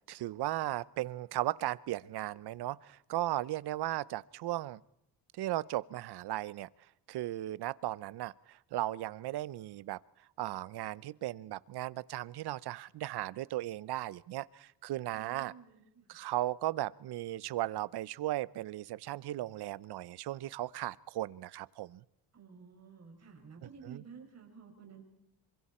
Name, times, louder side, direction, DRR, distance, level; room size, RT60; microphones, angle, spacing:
voice 1, 0.1-4.8 5.3-6.7 7.1-10.0 10.4-15.5 16.1-22.0 23.6-24.0, right 15 dB, 65° right, 20 dB, 0.7 m, -36 dB
voice 2, 15.1-16.2 22.3-25.0, right 6 dB, 35° right, 2 dB, 6.0 m, -53 dB
27.5 x 24.5 x 4.3 m, 0.80 s
cardioid pair, 155°, 43 cm